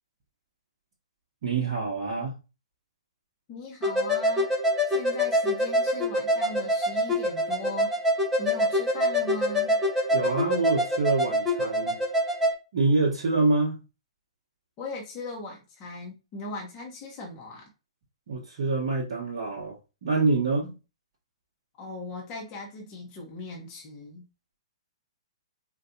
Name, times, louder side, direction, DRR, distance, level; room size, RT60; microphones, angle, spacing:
voice 1, 1.4-2.3 10.1-12.0 12.7-13.8 18.3-20.7, right 3 dB, 50° right, 1.0 m, -26 dB
voice 2, 3.5-4.5 4.9-7.9 8.4-9.8 14.8-17.7 21.8-24.2, left 2 dB, 25° left, 1.0 m, -39 dB
sound 1, 3.8-12.5, left 1 dB, 10° right, 1.0 m, -25 dB
4.4 x 2.6 x 2.7 m
figure-of-eight pair, 115°, 3 cm